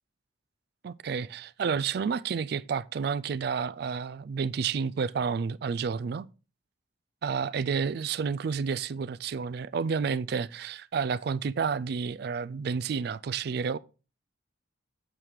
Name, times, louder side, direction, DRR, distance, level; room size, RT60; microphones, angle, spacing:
voice 1, 0.8-6.3 7.2-13.8, right 6 dB, 55° right, 0.3 m, -30 dB
7.4 x 4.7 x 5.0 m
head